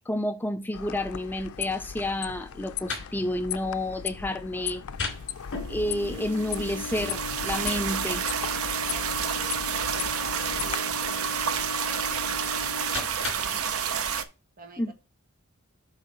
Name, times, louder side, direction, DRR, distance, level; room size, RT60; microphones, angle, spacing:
voice 1, 0.1-4.8 5.7-8.3 14.8-14.9, left 1 dB, 10° left, 0.3 m, -30 dB
sound 1, 0.7-10.8, left 9 dB, 85° left, 0.5 m, -37 dB
sound 2, 2.5-13.7, left 4 dB, 60° left, 2.6 m, -39 dB
sound 3, 5.9-14.2, right 7 dB, 85° right, 0.7 m, -30 dB
voice 2, 8.9-13.9 14.6-14.9, right 3 dB, 45° right, 1.4 m, -49 dB
8.0 x 3.2 x 5.3 m
head